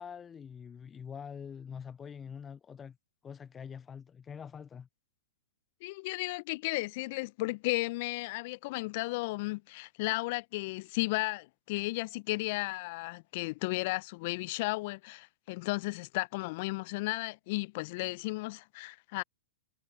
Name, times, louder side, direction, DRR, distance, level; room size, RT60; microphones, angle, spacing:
voice 1, 0.0-3.0 3.2-4.9, left 7 dB, 20° left, 0.5 m, -45 dB
voice 2, 5.8-19.2, left 23 dB, 50° left, 0.8 m, -34 dB
figure-of-eight pair, 105°, 0 cm